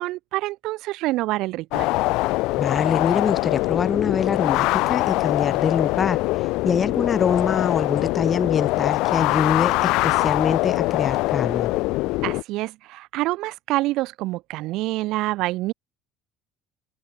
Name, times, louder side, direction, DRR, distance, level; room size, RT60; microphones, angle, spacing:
voice 1, 0.0-1.9 12.2-15.7, right 18 dB, 60° right, 7.2 m, -27 dB
sound 1, 1.7-12.4, left 21 dB, 65° left, 1.0 m, -23 dB
voice 2, 2.6-11.7, left 6 dB, 25° left, 7.5 m, -24 dB
cardioid pair, 165°, 0 cm